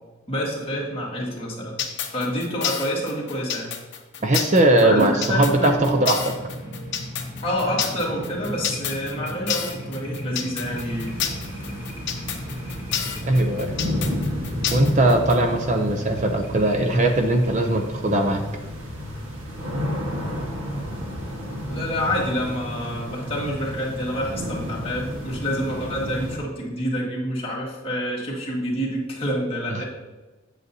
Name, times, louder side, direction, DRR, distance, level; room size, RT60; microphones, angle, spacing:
voice 1, 0.3-1.8 2.1-3.7 4.8-6.0 7.4-11.2 21.7-29.9, equal, 30° left, -4 dB, 1.9 m, -28 dB
sound 1, 1.8-15.4, left 9 dB, 60° left, 0.8 m, -29 dB
voice 2, 4.2-6.3 13.2-13.7 14.7-18.4 29.7-29.8, right 1 dB, 35° right, 5 dB, 0.5 m, -20 dB
sound 2, 4.8-18.4, equal, 20° right, 1.5 m, -37 dB
sound 3, 10.6-26.4, equal, 85° right, 1.5 m, -31 dB
7.9 x 7.9 x 2.8 m, 1.2 s
head